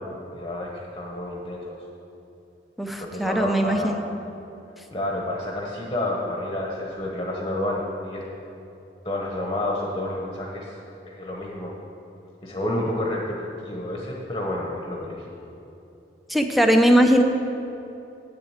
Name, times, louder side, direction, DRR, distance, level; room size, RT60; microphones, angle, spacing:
voice 1, 0.3-1.8 3.0-4.0 4.9-8.2 9.0-10.8 11.0-11.7 12.4-13.4 13.6-15.2, left 1 dB, 25° left, -2 dB, 1.0 m, -29 dB
voice 2, 2.8-4.0 16.3-17.2, equal, ahead, 4 dB, 0.7 m, -19 dB
7.7 x 7.5 x 8.1 m, 2.9 s
head